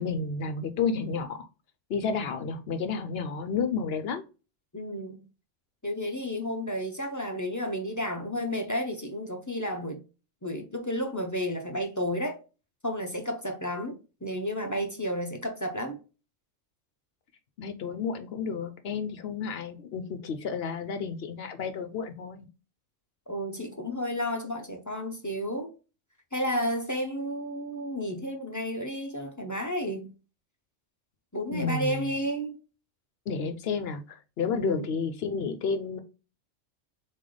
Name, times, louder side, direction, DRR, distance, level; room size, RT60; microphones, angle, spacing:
voice 1, 0.0-1.4 1.9-4.2 17.6-22.5 31.5-32.1 33.3-36.0, left 5 dB, 60° left, 0.8 m, -31 dB
voice 2, 4.7-5.2 5.8-10.0 10.4-12.4 12.8-16.0 23.3-25.7 26.3-30.1 31.3-32.6 34.4-34.9, equal, 20° left, 0.5 m, -32 dB
4.1 x 3.3 x 3.8 m
omnidirectional pair, 1.3 m